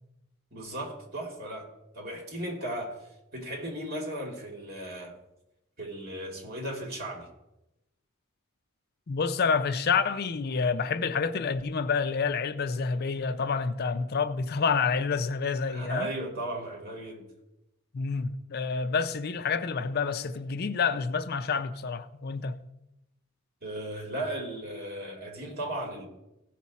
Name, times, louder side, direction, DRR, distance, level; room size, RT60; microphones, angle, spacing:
voice 1, 0.5-3.0 3.3-5.2 5.8-7.3 15.7-17.2 23.6-26.1, right 1 dB, 50° right, 2.6 m, -36 dB
voice 2, 9.1-16.1 17.9-22.6, left 5 dB, 50° left, 0.5 m, -28 dB
16.5 x 6.0 x 4.1 m
head